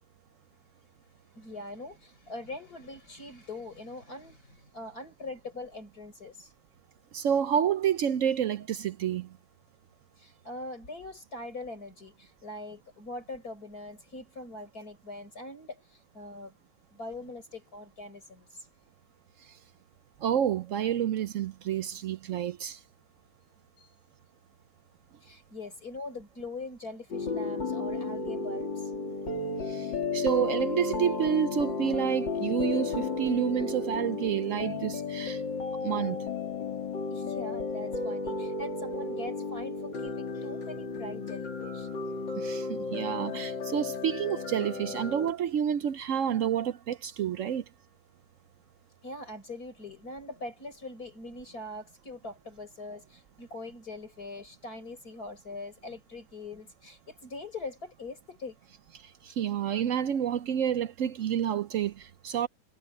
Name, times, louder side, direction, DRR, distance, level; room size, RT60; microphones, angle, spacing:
voice 1, 1.3-6.5 10.2-16.6 16.9-18.6 23.8-23.9 25.2-28.9 37.1-41.9 49.0-58.6, left 2 dB, 55° left, 6.1 m, -42 dB
voice 2, 7.1-9.3 20.2-22.8 29.7-29.9 30.1-35.4 35.8-36.2 42.4-47.6 59.2-62.5, right 9 dB, 70° right, 0.7 m, -29 dB
sound 1, 27.1-45.3, left 4 dB, 85° left, 3.5 m, -33 dB
omnidirectional pair, 1.9 m